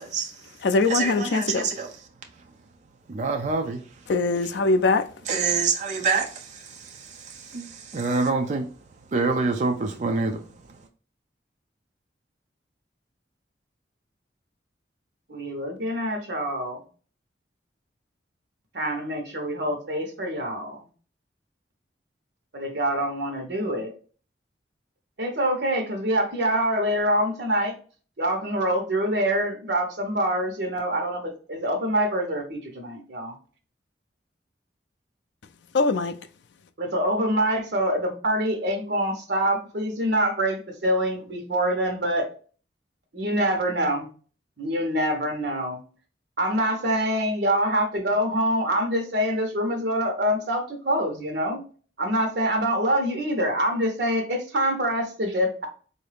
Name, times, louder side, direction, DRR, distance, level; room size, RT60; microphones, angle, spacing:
voice 1, 0.0-0.5 0.9-2.1 2.4-2.5 3.1-4.1 4.4-4.5 5.3-8.7 9.1-10.8, right 4 dB, 40° right, 0.4 m, -27 dB
voice 2, 0.6-1.7 4.1-5.1 35.7-36.1, left 3 dB, 75° left, 0.4 m, -22 dB
voice 3, 15.3-16.8 18.7-20.8 22.5-23.9 25.2-27.7 28.2-33.3 36.8-42.3 43.1-44.1 44.6-45.8 46.4-51.6 52.0-55.7, equal, 70° right, 1.0 m, -25 dB
3.8 x 2.6 x 3.3 m
head